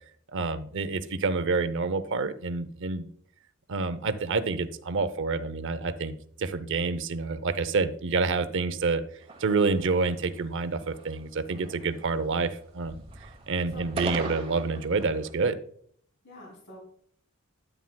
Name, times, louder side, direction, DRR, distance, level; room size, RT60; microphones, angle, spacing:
voice 1, 0.3-3.1 3.7-9.0 9.4-13.0 13.5-15.5, right 4 dB, 60° right, 12 dB, 0.6 m, -28 dB
sound 1, 9.2-10.4 10.8-11.2 11.5-12.5 12.8-15.3, right 2 dB, 25° right, 1.0 m, -40 dB
voice 2, 13.2-13.8 16.2-16.8, left 1 dB, 55° left, -1 dB, 3.1 m, -49 dB
9.3 x 9.0 x 2.2 m, 0.62 s
head